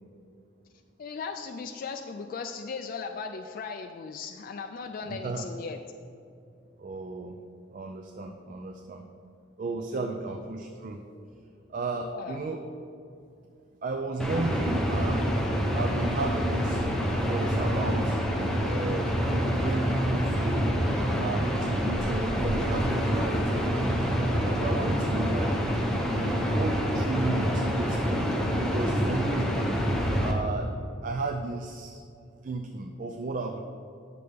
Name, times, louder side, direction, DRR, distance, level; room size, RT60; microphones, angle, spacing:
voice 1, 1.0-5.8 9.9-10.2 11.9-12.4, left 5 dB, 50° left, 5 dB, 0.3 m, -37 dB
voice 2, 5.1-5.5 6.8-7.3 7.7-9.0 9.6-11.0 11.7-12.6 13.8-15.3 15.7-16.8 17.3-18.2 18.6-20.7 21.2-25.5 26.6-29.5 30.2-30.7 31.0-32.0 32.4-33.6, right 3 dB, 45° right, 4 dB, 0.4 m, -34 dB
sound 1, 14.2-30.3, equal, 5° left, 0.8 m, -27 dB
9.3 x 6.7 x 3.4 m, 2.5 s
head